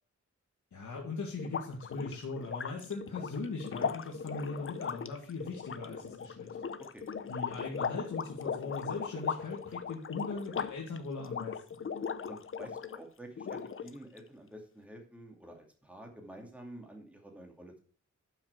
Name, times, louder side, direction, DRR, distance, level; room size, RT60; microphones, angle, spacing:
voice 1, 0.7-6.5 7.3-11.8, left 3 dB, 75° left, -2 dB, 2.1 m, -39 dB
sound 1, 1.4-13.0 13.4-14.2, left 6 dB, 45° left, 0.6 m, -38 dB
voice 2, 12.3-17.8, right 1 dB, 5° right, 2 dB, 2.3 m, -49 dB
12.0 x 6.0 x 4.6 m, 0.42 s
wide cardioid pair, 175°, 30 cm